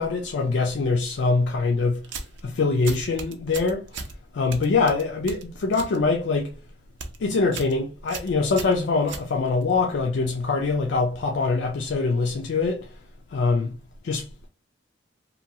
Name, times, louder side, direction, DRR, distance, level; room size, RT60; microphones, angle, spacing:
voice 1, 0.0-2.0 2.4-3.9 4.3-6.5 7.2-12.9 13.3-13.7 14.0-14.3, left 4 dB, 70° left, 0.4 m, -23 dB
sound 1, 2.0-2.4 2.8-4.1 4.5-6.0 6.3-6.6 6.9-7.2 7.5-7.8 8.1-9.7, right 4 dB, 80° right, 0.5 m, -36 dB
2.8 x 2.2 x 2.7 m
head